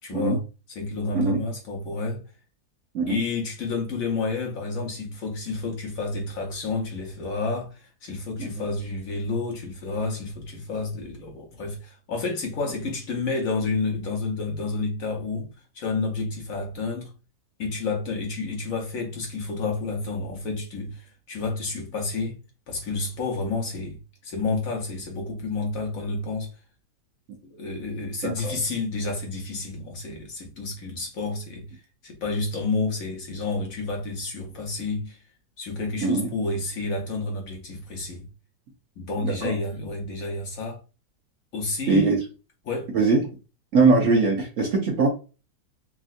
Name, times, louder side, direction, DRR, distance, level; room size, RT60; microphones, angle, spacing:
voice 1, 0.0-2.2 3.1-15.5 15.7-17.1 17.6-22.4 22.7-26.5 27.5-35.2 35.6-38.3 39.0-40.8 41.5-42.2 42.6-42.9, left 3 dB, 60° left, 1.0 m, -30 dB
voice 2, 28.2-28.6 36.0-36.3 39.2-39.5 41.9-42.2 42.9-43.2 43.7-45.1, right 3 dB, 60° right, 0.9 m, -21 dB
3.5 x 2.4 x 2.4 m
omnidirectional pair, 1.9 m